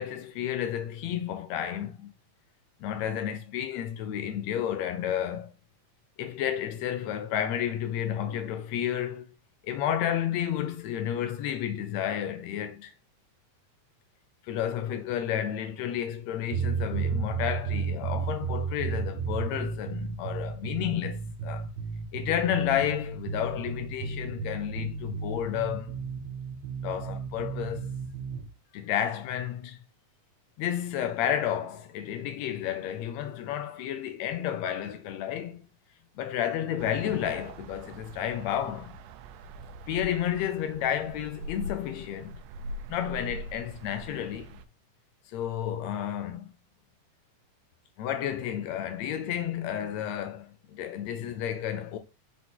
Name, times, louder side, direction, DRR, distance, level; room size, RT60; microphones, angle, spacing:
voice 1, 0.0-2.1 2.8-5.5 6.2-9.3 9.6-12.9 14.4-21.7 22.1-26.0 26.8-27.9 28.7-29.8 30.6-35.6 36.2-39.0 39.9-42.4 42.9-44.6 45.3-46.5 48.0-52.0, left 10 dB, 75° left, 1.6 m, -31 dB
sound 1, 16.5-28.5, right 6 dB, 60° right, 2.3 m, -33 dB
sound 2, 36.8-44.7, right 1 dB, 85° right, 2.1 m, -43 dB
6.1 x 4.0 x 3.8 m
omnidirectional pair, 3.6 m